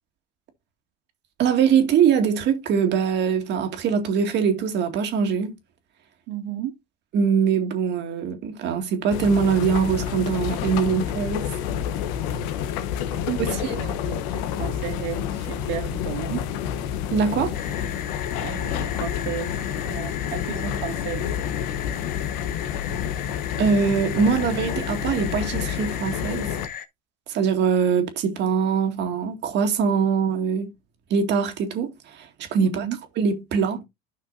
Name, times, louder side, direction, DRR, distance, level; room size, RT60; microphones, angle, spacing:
voice 1, 1.4-5.5 7.1-11.5 13.4-13.8 17.1-17.5 23.6-26.5 27.3-30.7 31.1-32.8 33.2-33.8, right 6 dB, 60° right, 2.0 m, -22 dB
voice 2, 6.3-6.7 13.1-16.5 18.4-21.3 32.6-33.0, right 11 dB, 80° right, 2.1 m, -33 dB
sound 1, 9.1-26.7, left 9 dB, 85° left, 1.0 m, -29 dB
sound 2, 17.5-26.9, left 9 dB, 45° left, 1.1 m, -37 dB
12.0 x 5.8 x 2.6 m
supercardioid pair, 100°, 20 cm